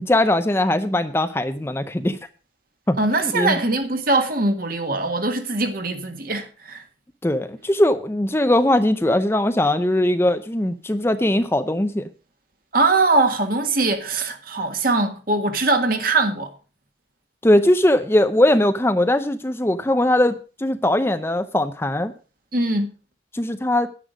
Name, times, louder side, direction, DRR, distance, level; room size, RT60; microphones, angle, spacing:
voice 1, 0.0-2.2 2.9-3.0 3.3-3.6 7.2-12.1 17.4-22.1 23.3-23.9, left 1 dB, 15° left, 0.6 m, -20 dB
voice 2, 3.0-6.8 12.7-16.5 22.5-22.9, right 2 dB, 50° right, 1.7 m, -21 dB
10.0 x 9.7 x 5.0 m
head